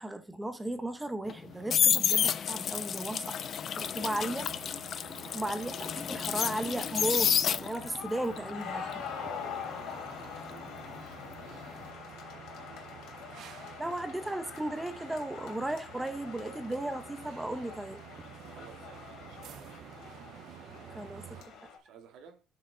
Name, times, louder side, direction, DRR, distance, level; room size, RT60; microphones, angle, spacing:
voice 1, 0.0-3.4 3.8-4.4 5.3-9.0 13.8-18.0 20.9-21.4, right 1 dB, 5° right, 0.8 m, -35 dB
sound 1, 1.3-8.0 8.4-11.3 11.5-11.9, left 8 dB, 40° left, 0.4 m, -30 dB
sound 2, 1.5-21.4, right 10 dB, 60° right, 0.6 m, -51 dB
sound 3, 3.3-21.8, left 7 dB, 85° left, 3.1 m, -45 dB
voice 2, 4.0-4.3 5.4-5.7 9.1-11.8 12.5-13.5 18.4-20.2 21.6-22.4, right 7 dB, 80° right, 1.9 m, -55 dB
7.0 x 6.3 x 3.9 m
cardioid pair, 165°, 0 cm